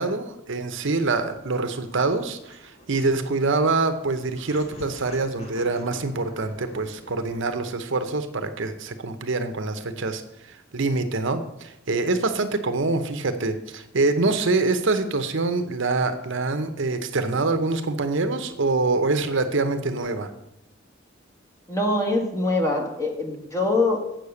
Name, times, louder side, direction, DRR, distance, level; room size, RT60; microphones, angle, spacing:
voice 1, 0.0-10.2 10.5-20.3, right 3 dB, 60° right, 9 dB, 0.8 m, -25 dB
sound 1, 1.4-7.4, equal, 30° left, 2.2 m, -47 dB
voice 2, 21.7-24.0, left 2 dB, 15° left, 1 dB, 1.5 m, -23 dB
7.8 x 6.6 x 6.9 m, 0.84 s
head